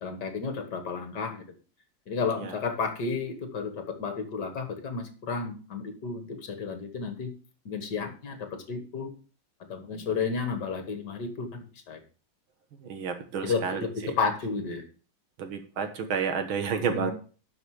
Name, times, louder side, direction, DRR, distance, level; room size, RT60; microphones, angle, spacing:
voice 1, 0.0-1.4 2.1-7.3 7.7-9.1 9.7-12.0 13.4-14.8 16.9-17.1, left 5 dB, 60° left, 7 dB, 2.1 m, -32 dB
voice 2, 12.8-14.1 15.4-17.1, right 6 dB, 85° right, 7 dB, 2.2 m, -31 dB
11.5 x 6.0 x 4.8 m, 0.38 s
omnidirectional pair, 2.2 m